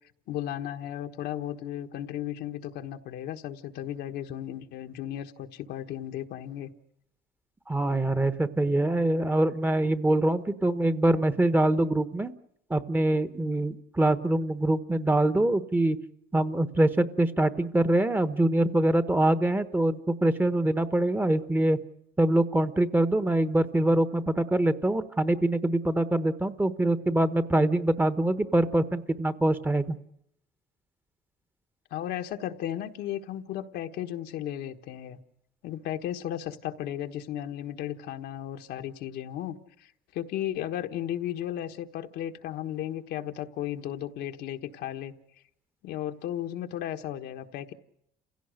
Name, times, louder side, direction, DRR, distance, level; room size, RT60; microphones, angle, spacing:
voice 1, 0.3-6.7 31.9-35.2 35.6-45.1 45.8-47.7, left 11 dB, 80° left, 5 dB, 1.4 m, -35 dB
voice 2, 7.7-12.3 12.7-16.0 16.3-21.8 22.2-30.0, right 1 dB, 10° right, 12 dB, 1.1 m, -24 dB
29.0 x 16.5 x 6.5 m, 0.76 s
cardioid pair, 110°, 17 cm